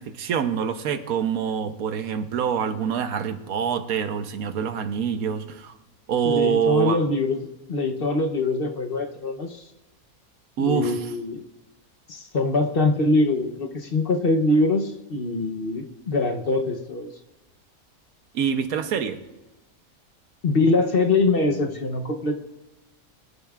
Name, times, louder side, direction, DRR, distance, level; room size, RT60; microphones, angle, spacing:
voice 1, 0.0-5.7 6.1-7.0 10.6-11.1 18.3-19.2, right 7 dB, 85° right, 9 dB, 1.3 m, -25 dB
voice 2, 6.2-9.6 10.6-11.4 12.1-17.1 20.4-22.3, left 2 dB, 45° left, 4 dB, 0.9 m, -23 dB
22.0 x 10.5 x 2.4 m, 1.0 s
omnidirectional pair, 1.5 m